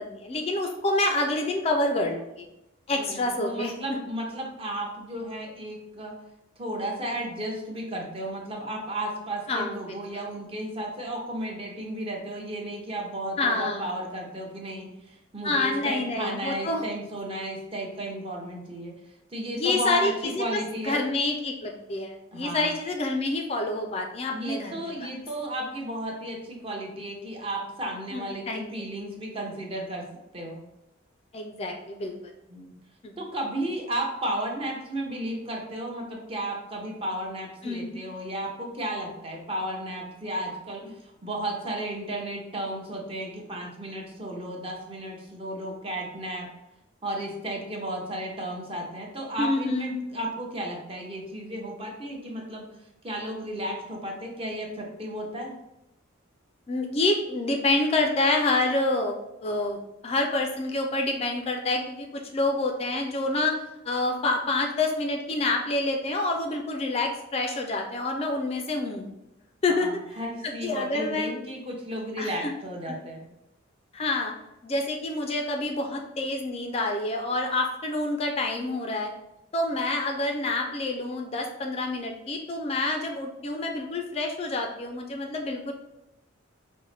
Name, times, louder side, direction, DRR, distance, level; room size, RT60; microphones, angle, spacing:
voice 1, 0.0-2.5 2.9-4.0 9.5-9.8 13.4-13.9 15.4-16.8 19.6-25.1 28.1-28.7 31.3-32.1 33.0-33.1 37.6-38.0 49.4-50.0 56.7-59.8 60.0-63.6 63.8-69.1 69.6-69.9 70.4-71.3 72.2-72.5 72.9-73.0 73.9-74.3 74.6-79.1 79.5-85.7, left 2 dB, 30° left, 3 dB, 0.3 m, -27 dB
voice 2, 2.9-6.1 6.6-18.9 19.3-21.0 22.3-22.7 24.3-30.0 30.3-30.6 32.5-32.7 33.2-40.9 41.2-46.5 47.0-52.7 53.0-55.6 69.7-73.2, right 1 dB, 30° right, 0 dB, 0.7 m, -34 dB
5.3 x 2.1 x 3.2 m, 0.89 s
head